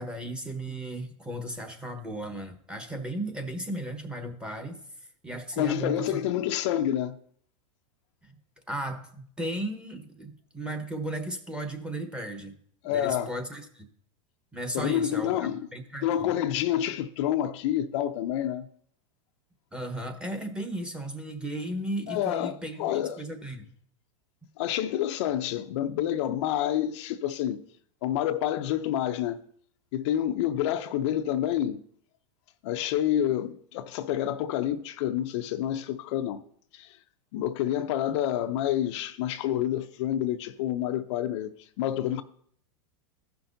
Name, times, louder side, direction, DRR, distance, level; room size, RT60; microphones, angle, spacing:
voice 1, 0.0-4.8 5.2-6.3 8.2-8.4 8.7-12.5 12.9-13.9 14.5-16.3 19.7-23.7, right 1 dB, 5° right, 1.1 m, -35 dB
voice 2, 5.6-7.2 12.8-13.3 14.7-15.7 16.0-18.7 22.1-23.2 24.6-27.6 28.0-29.4 29.9-31.8 32.6-36.4 36.7-37.0 37.3-42.2, left 11 dB, 60° left, 0.5 m, -28 dB
15.0 x 5.8 x 2.6 m
supercardioid pair, 135°, 17 cm